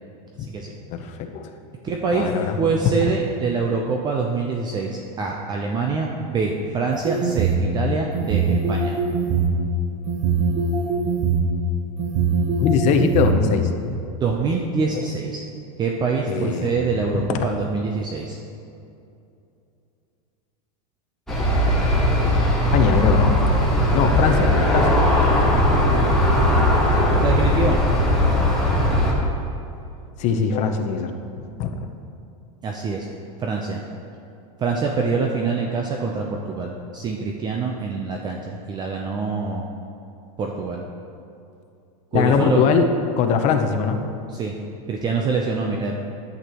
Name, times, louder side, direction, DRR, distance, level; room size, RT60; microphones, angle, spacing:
voice 1, 0.9-1.6 2.1-2.6 12.6-14.0 16.3-16.9 17.1-17.4 22.2-22.3 22.7-23.4 23.9-25.0 30.2-31.1 31.4-31.8 42.1-42.9 43.2-44.0, left 6 dB, 35° left, 5 dB, 0.7 m, -21 dB
voice 2, 1.8-2.3 2.6-9.0 14.2-15.4 15.8-18.4 26.9-27.8 32.6-33.1 33.4-33.8 34.6-39.7 40.4-40.8 42.1-42.7 44.3-44.5 44.9-46.0, right 4 dB, 20° right, 0 dB, 0.5 m, -25 dB
sound 1, 6.9-7.6 8.1-9.5 10.1-11.4 12.0-13.3, right 5 dB, 40° right, 1.0 m, -21 dB
Aircraft, 21.3-29.1, left 1 dB, ahead, 1.5 m, -18 dB
11.0 x 8.2 x 3.0 m, 2.6 s
supercardioid pair, 145°, 20 cm